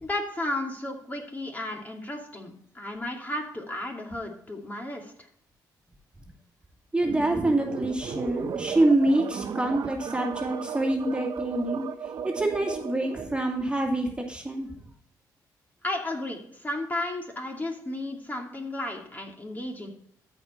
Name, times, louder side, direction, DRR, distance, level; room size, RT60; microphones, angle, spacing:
voice 1, 0.0-5.1 15.8-19.9, left 1 dB, 20° left, 1 dB, 2.6 m, -33 dB
voice 2, 6.9-11.8 12.2-14.7, right 1 dB, 15° right, 1 dB, 2.5 m, -26 dB
sound 1, 7.0-13.5, right 6 dB, 60° right, 0.9 m, -35 dB
13.5 x 5.3 x 4.4 m, 0.68 s
cardioid pair, 80°, 8 cm